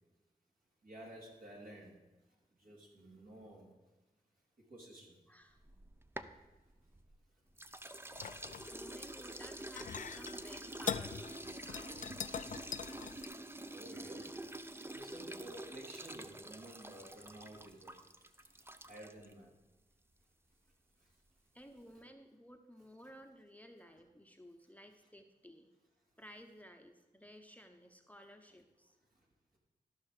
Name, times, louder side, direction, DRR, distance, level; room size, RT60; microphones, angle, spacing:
voice 1, 0.8-2.0 2.5-3.7 4.7-5.2 6.8-6.9 7.6-7.7 8.3-8.8 12.7-12.8 13.2-19.6 21.0-21.2 29.1-29.2, right 1 dB, 60° right, -2 dB, 3.0 m, -54 dB
voice 2, 5.3-5.6 8.7-12.3 21.5-25.7 26.2-29.0, equal, 10° left, 5 dB, 0.9 m, -56 dB
sound 1, 5.6-7.2 7.6-19.3, right 1 dB, 15° right, 0.6 m, -47 dB
sound 2, 8.1-13.2, left 7 dB, 55° left, 0.4 m, -43 dB
13.5 x 5.6 x 4.9 m, 1.1 s
cardioid pair, 45°, 16 cm